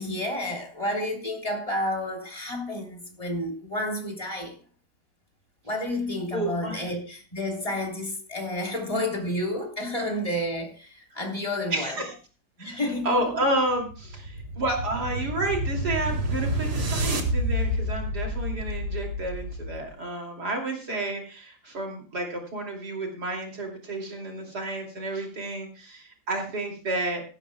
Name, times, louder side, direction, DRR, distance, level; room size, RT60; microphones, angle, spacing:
voice 1, 0.0-4.5 5.7-11.9 12.6-13.2, left 1 dB, 20° left, 3.4 m, -30 dB
voice 2, 6.3-6.9 11.7-12.1 12.6-27.2, right 2 dB, 60° right, 3.3 m, -30 dB
sound 1, 13.5-19.9, equal, 75° right, 2.6 m, -29 dB
17.0 x 14.5 x 2.3 m
omnidirectional pair, 2.0 m